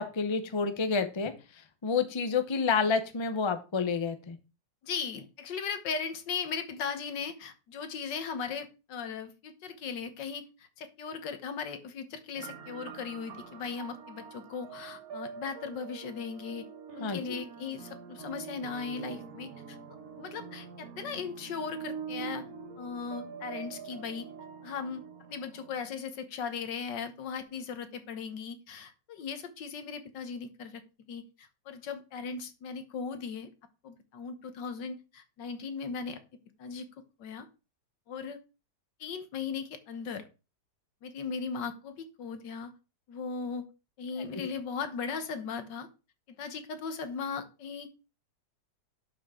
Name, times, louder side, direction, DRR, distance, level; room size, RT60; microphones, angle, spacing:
voice 1, 0.0-4.4 17.0-17.4 44.3-44.5, left 5 dB, 25° left, 8 dB, 0.7 m, -30 dB
voice 2, 4.8-16.6 17.0-19.8 20.2-22.5 22.8-24.3 24.6-25.0 25.3-30.8 31.1-33.5 33.8-36.2 36.6-36.9 37.2-37.5 38.1-38.4 39.0-40.2 41.0-42.7 43.1-43.7 44.0-45.9 46.3-47.9, left 5 dB, 80° left, 9 dB, 1.8 m, -38 dB
sound 1, 12.4-25.9, right 6 dB, 60° right, 1.7 m, -44 dB
11.5 x 6.0 x 3.7 m, 0.31 s
omnidirectional pair, 1.9 m